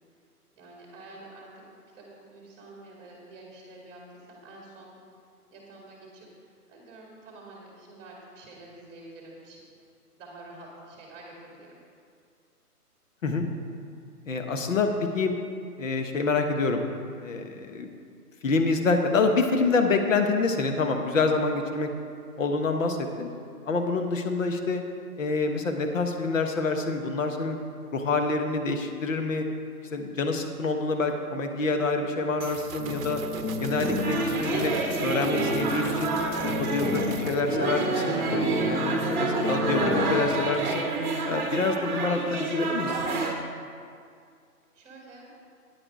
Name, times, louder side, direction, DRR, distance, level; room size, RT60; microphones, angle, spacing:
voice 1, 0.6-1.5 2.0-5.0 5.5-9.6 10.2-11.8 23.1-23.4 44.7-45.3, right 2 dB, 15° right, -2 dB, 1.9 m, -48 dB
voice 2, 14.3-14.9 15.1-15.4 15.8-16.8 17.2-17.9 18.4-21.9 22.4-23.3 23.7-24.8 25.2-27.6 27.9-29.5 29.9-33.2 33.6-34.7 35.0-36.1 36.4-38.2 38.6-40.8 41.3-43.0, left 3 dB, 55° left, 5 dB, 1.1 m, -27 dB
sound 1, 32.4-37.4, right 6 dB, 55° right, 0.8 m, -41 dB
sound 2, 32.8-40.5, left 2 dB, 15° left, 0.7 m, -31 dB
sound 3, 34.0-43.3, right 3 dB, 30° right, 1.1 m, -29 dB
10.0 x 8.5 x 4.7 m, 2.3 s
figure-of-eight pair, 150°, 47 cm